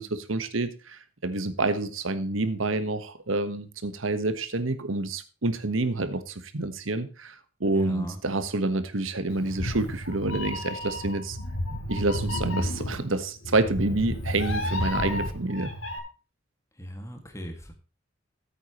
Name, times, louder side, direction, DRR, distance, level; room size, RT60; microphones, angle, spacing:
voice 1, 0.0-11.4 11.9-15.7, right 2 dB, 75° right, 1.3 m, -28 dB
voice 2, 7.7-8.2 16.8-17.7, equal, 15° left, 1.9 m, -38 dB
Meow, 9.3-16.0, left 1 dB, 90° left, 3.2 m, -32 dB
14.0 x 8.4 x 3.0 m
head